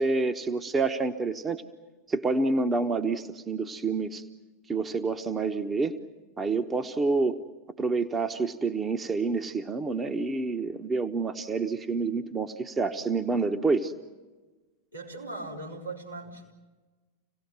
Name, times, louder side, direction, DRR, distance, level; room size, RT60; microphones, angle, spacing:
voice 1, 0.0-1.6 2.1-4.2 4.7-6.0 6.4-7.4 7.8-13.9, right 3 dB, 15° right, 8 dB, 1.1 m, -28 dB
voice 2, 14.9-16.5, right 2 dB, 90° right, -4 dB, 4.9 m, -39 dB
26.5 x 18.0 x 9.5 m, 1.3 s
figure-of-eight pair, 90°, 0 cm